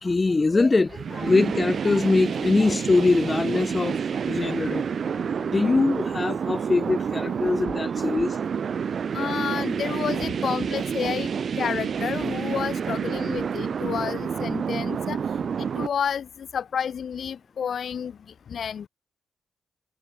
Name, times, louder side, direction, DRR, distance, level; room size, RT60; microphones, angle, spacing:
voice 1, 0.0-8.4, left 3 dB, 30° left, 0.8 m, -23 dB
sound 1, 0.9-15.9, right 7 dB, 60° right, 1.8 m, -28 dB
voice 2, 9.1-11.3 11.6-15.2 15.6-18.2 18.5-18.9, left 7 dB, 65° left, 5.9 m, -30 dB
cardioid pair, 85°, 0 cm